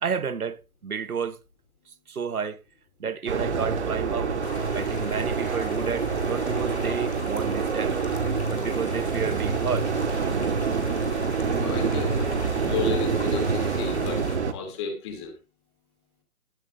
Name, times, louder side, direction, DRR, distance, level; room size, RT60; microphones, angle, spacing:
voice 1, 0.0-1.4 2.1-2.6 3.0-4.4 4.7-8.0 8.5-9.9, right 6 dB, 90° right, 1.1 m, -31 dB
sound 1, 3.3-14.5, right 5 dB, 50° right, 1.7 m, -26 dB
sound 2, 4.4-14.4, left 5 dB, 50° left, 3.8 m, -43 dB
voice 2, 11.6-12.3 12.6-15.3, left 6 dB, 20° left, 2.8 m, -33 dB
21.0 x 8.9 x 2.6 m
hypercardioid pair, 160°, 43 cm